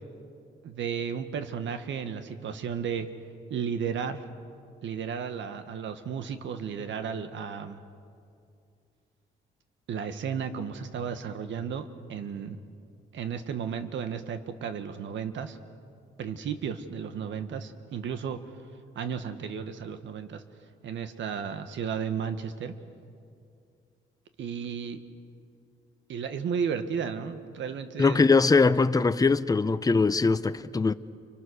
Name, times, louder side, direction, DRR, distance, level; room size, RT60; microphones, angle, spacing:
voice 1, 0.6-3.1 3.5-4.2 4.8-7.8 9.9-12.6 13.1-15.6 16.2-18.4 19.0-20.4 20.8-22.7 24.4-25.0 26.1-28.2, right 7 dB, 70° right, 1.7 m, -33 dB
voice 2, 28.0-30.9, left 4 dB, 20° left, 0.8 m, -22 dB
29.5 x 24.5 x 6.5 m
cardioid pair, 90°, 20 cm